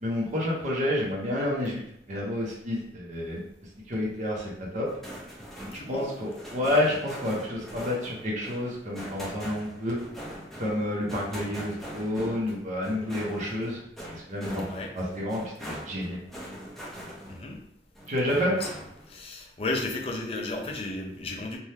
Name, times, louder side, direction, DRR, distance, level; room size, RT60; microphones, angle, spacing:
voice 1, 0.0-1.8 2.1-3.4 3.9-4.9 5.9-10.0 10.6-13.8 14.1-14.6 14.9-16.5 18.1-18.6, left 1 dB, 45° right, -4 dB, 0.7 m, -29 dB
sound 1, 4.8-17.6 17.9-19.1, equal, ahead, 0.8 m, -42 dB
voice 2, 5.7-6.1 14.7-14.9 17.3-17.6 18.3-18.7 19.1-21.6, left 2 dB, 35° left, 1 dB, 0.5 m, -34 dB
3.2 x 2.2 x 2.8 m, 0.77 s
head